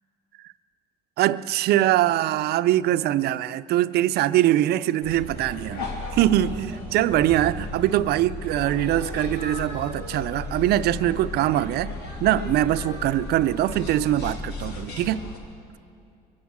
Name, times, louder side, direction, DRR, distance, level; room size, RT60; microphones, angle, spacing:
voice 1, 1.2-11.9 12.2-15.2, right 13 dB, 75° right, 14 dB, 0.5 m, -23 dB
sound 1, 5.0-15.4, left 2 dB, 70° left, 2.0 m, -35 dB
23.5 x 9.5 x 6.1 m, 2.6 s
cardioid pair, 110°, 17 cm